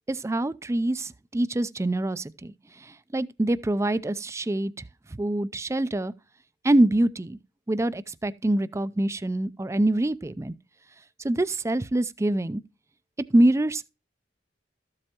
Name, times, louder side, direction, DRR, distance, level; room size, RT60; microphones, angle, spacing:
voice 1, 0.1-2.5 2.8-4.7 5.2-6.1 6.6-7.4 7.7-10.5 11.2-12.6 13.3-13.9, right 1 dB, 15° right, 0.4 m, -25 dB
13.5 x 7.7 x 2.9 m
head